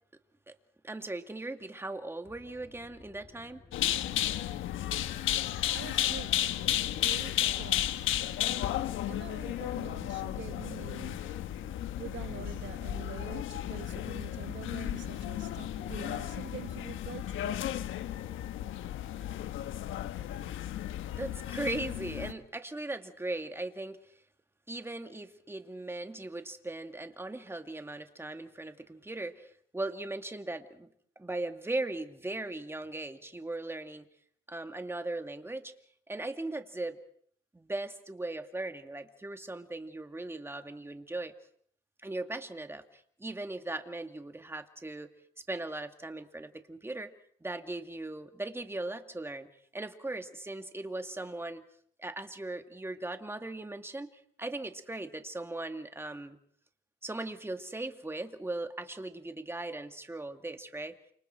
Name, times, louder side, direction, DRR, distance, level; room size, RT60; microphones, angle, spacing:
voice 1, 0.8-3.6 21.1-24.0 24.7-30.9 31.2-34.1 34.5-35.7 36.1-37.0 37.5-41.3 42.0-45.1 45.5-47.1 47.4-49.5 49.7-51.6 52.0-56.4 57.0-61.0, right 2 dB, 10° right, 2.2 m, -38 dB
sound 1, 2.2-18.7, left 3 dB, 25° left, 7.9 m, -56 dB
sound 2, 3.7-22.3, left 12 dB, 80° left, 1.3 m, -33 dB
voice 2, 4.9-17.9, right 10 dB, 70° right, 1.6 m, -47 dB
29.0 x 26.5 x 4.5 m
cardioid pair, 90°, 20 cm